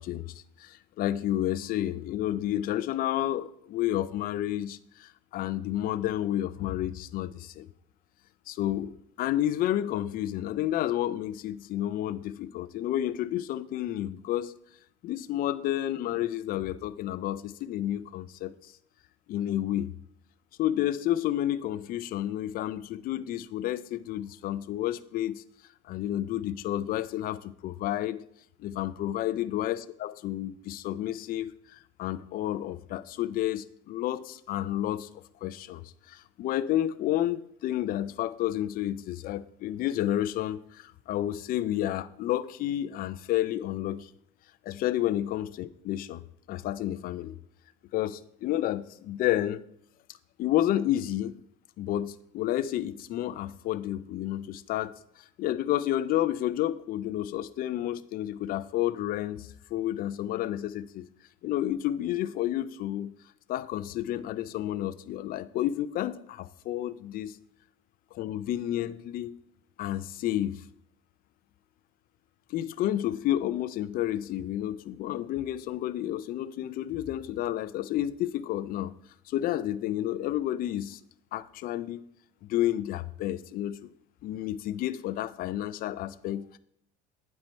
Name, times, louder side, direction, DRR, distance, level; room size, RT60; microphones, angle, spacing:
voice 1, 0.0-7.7 8.5-14.5 15.0-18.7 19.3-19.9 20.6-25.4 25.8-28.2 28.6-35.1 35.4-44.1 44.7-46.2 46.5-47.3 47.9-49.6 50.4-51.3 51.8-61.1 61.4-63.1 63.5-67.4 68.1-69.3 69.8-70.6 72.5-78.9 79.3-81.0 81.3-82.0 82.4-83.9 84.2-86.6, left 12 dB, 45° left, 0.4 m, -30 dB
8.9 x 4.3 x 4.3 m
cardioid pair, 120°, 20 cm